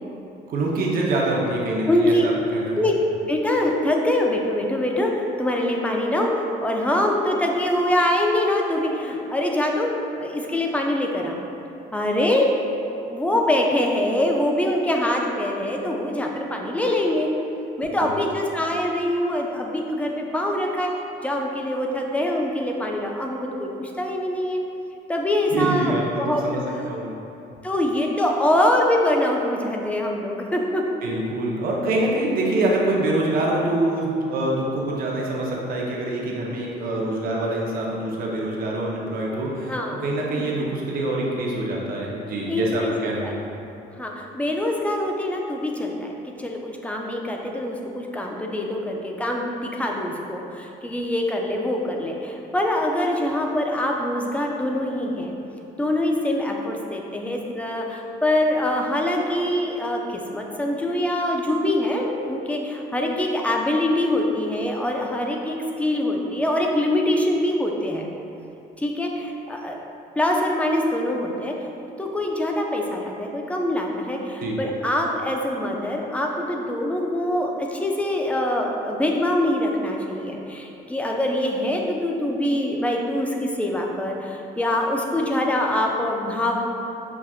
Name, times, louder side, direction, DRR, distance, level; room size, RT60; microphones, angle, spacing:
voice 1, 0.5-2.8 18.0-18.2 25.5-26.6 26.9-27.1 31.0-39.7 40.0-43.4 74.4-74.6, right 2 dB, 60° right, -2 dB, 0.7 m, -25 dB
voice 2, 1.9-2.2 2.8-3.0 3.3-11.4 11.9-12.5 13.0-17.3 17.8-20.9 21.2-24.6 25.1-26.6 27.6-30.8 39.7-40.0 40.3-40.6 42.5-43.3 44.0-46.1 46.4-55.4 55.8-68.1 68.8-69.8 70.2-71.5 72.0-86.6, left 1 dB, 10° left, 0 dB, 0.4 m, -24 dB
5.8 x 2.4 x 2.3 m, 2.8 s
cardioid pair, 110°, 17 cm